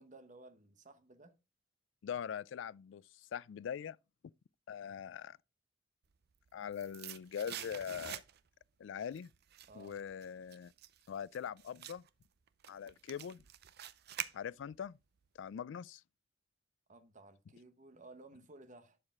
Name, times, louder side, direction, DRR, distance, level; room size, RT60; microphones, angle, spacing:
voice 1, 0.0-1.4 9.7-10.0 16.9-19.0, right 2 dB, 40° right, 1.1 m, -56 dB
voice 2, 2.0-3.0 3.3-4.0 4.7-5.4 6.5-8.2 8.8-9.3 9.8-10.7 11.1-12.0 12.7-13.4 14.3-15.0 15.4-16.0, left 8 dB, 70° left, 0.3 m, -42 dB
sound 1, 6.2-8.6 9.0-14.9 15.2-15.3, right 11 dB, 60° right, 0.6 m, -47 dB
11.5 x 5.0 x 3.6 m
head